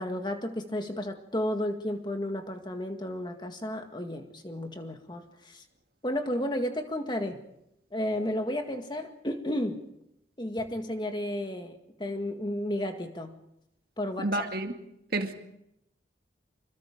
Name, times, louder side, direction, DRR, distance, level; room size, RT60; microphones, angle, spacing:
voice 1, 0.0-5.6 6.0-7.4 7.9-9.8 10.4-13.4 14.0-14.4, left 1 dB, 25° left, 5 dB, 1.9 m, -32 dB
voice 2, 14.2-14.7 15.1-15.4, right 2 dB, 55° right, 5 dB, 2.1 m, -29 dB
26.0 x 22.0 x 5.1 m, 0.81 s
head